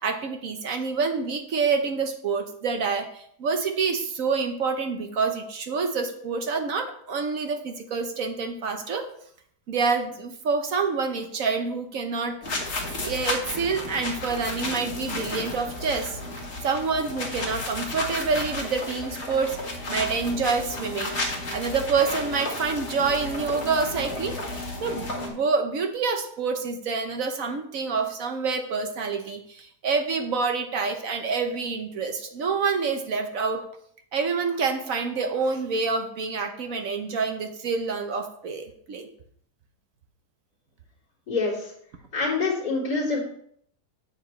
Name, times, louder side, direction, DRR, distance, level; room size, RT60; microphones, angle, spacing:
voice 1, 0.0-9.1 9.7-12.7 13.0-16.2 16.6-21.1 21.5-33.6 34.1-39.1, right 4 dB, 60° right, 6 dB, 1.2 m, -27 dB
sound 1, 12.4-25.3, left 2 dB, 45° left, 1.7 m, -33 dB
voice 2, 42.1-43.2, left 3 dB, 85° left, -8 dB, 3.6 m, -25 dB
8.9 x 8.0 x 3.2 m, 0.65 s
omnidirectional pair, 1.7 m